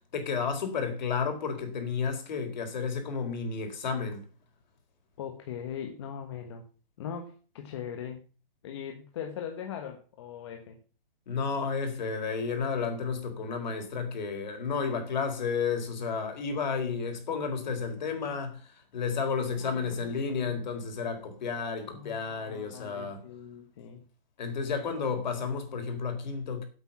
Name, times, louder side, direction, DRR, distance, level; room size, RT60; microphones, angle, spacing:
voice 1, 0.1-4.3 11.3-23.2 24.4-26.7, left 5 dB, 50° left, 4.0 m, -32 dB
voice 2, 5.2-6.7 7.0-8.2 8.6-10.8 19.6-20.6 21.9-24.0, left 8 dB, 30° left, 1.2 m, -40 dB
9.5 x 8.1 x 7.0 m
hypercardioid pair, 175°, 29 cm